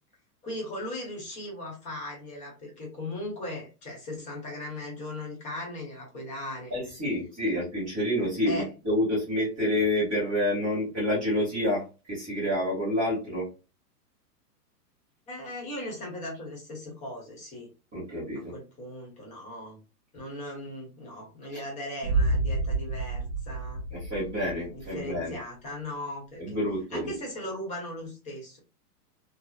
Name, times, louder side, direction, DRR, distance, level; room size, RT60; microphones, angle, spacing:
voice 1, 0.4-6.8 8.5-8.7 15.3-17.7 18.3-19.8 20.1-23.8 24.7-26.6 26.9-28.6, left 1 dB, 15° left, -1 dB, 0.8 m, -38 dB
voice 2, 6.7-13.5 17.9-18.5 23.9-25.4 26.4-27.1, left 1 dB, 5° right, -13 dB, 0.3 m, -28 dB
Boom, 22.0-25.0, right 2 dB, 25° right, 1.0 m, -29 dB
2.9 x 2.0 x 2.3 m, 0.30 s
hypercardioid pair, 150°, 47 cm